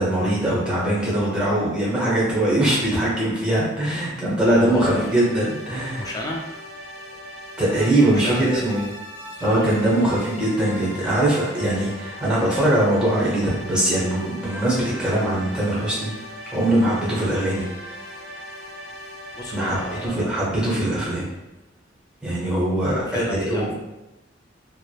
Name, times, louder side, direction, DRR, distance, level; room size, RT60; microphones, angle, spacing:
voice 1, 0.0-6.0 7.6-8.8 9.4-16.1 16.5-17.7 19.5-21.3 22.2-23.7, right 1 dB, 5° right, -7 dB, 0.8 m, -21 dB
voice 2, 4.4-5.2 5.9-6.4 8.1-8.8 9.5-9.8 19.3-20.5 22.9-23.7, left 1 dB, 20° left, -1 dB, 0.4 m, -31 dB
sound 1, 4.7-20.1, equal, 40° left, 1.1 m, -39 dB
3.0 x 2.0 x 2.2 m, 0.97 s
head